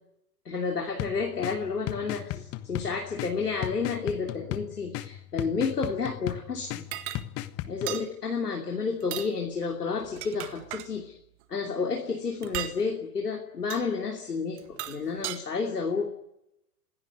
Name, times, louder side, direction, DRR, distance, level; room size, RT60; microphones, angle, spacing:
voice 1, 0.4-6.8 7.7-11.2 11.5-16.0, left 5 dB, 75° left, 1 dB, 3.0 m, -31 dB
sound 1, 1.0-8.0, left 14 dB, 30° left, 1.4 m, -37 dB
sound 2, 6.9-7.2 7.9-8.1 9.0-9.3 10.0-10.9 12.4-12.8 13.7-13.9 14.6-15.4, right 13 dB, 45° right, 1.8 m, -36 dB
26.5 x 17.0 x 9.7 m, 0.83 s
figure-of-eight pair, 95°, 47 cm